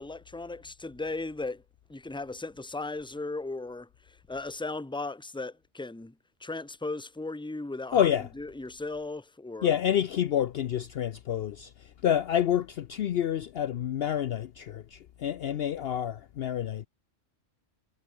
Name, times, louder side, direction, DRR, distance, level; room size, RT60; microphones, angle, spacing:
voice 1, 0.0-1.6 1.9-6.1 6.4-8.1 8.4-9.7, left 2 dB, 5° left, 1.0 m, -37 dB
voice 2, 7.9-8.3 9.6-16.9, left 10 dB, 60° left, 0.7 m, -28 dB
omnidirectional pair, 1.3 m